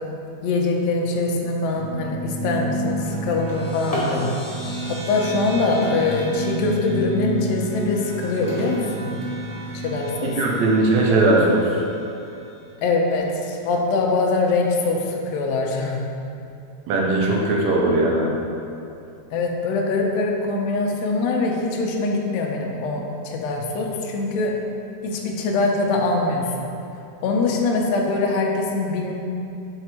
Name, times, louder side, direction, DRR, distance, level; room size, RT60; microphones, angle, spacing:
voice 1, 0.4-4.4 4.9-9.1 9.7-10.4 12.8-16.0 19.3-24.5 25.0-26.7 27.2-29.1, left 3 dB, 75° left, 0 dB, 1.8 m, -23 dB
sound 1, 1.7-12.5, right 1 dB, 55° right, 0.9 m, -31 dB
Drawer open or close, 2.2-4.2 5.3-6.9 7.4-9.9 10.5-10.6 11.1-11.2 11.6-11.9, left 1 dB, 50° left, 0.4 m, -34 dB
voice 2, 10.2-11.6 16.9-18.4, right 2 dB, 75° right, -2 dB, 2.0 m, -19 dB
5.9 x 4.5 x 4.3 m, 2.7 s
omnidirectional pair, 3.4 m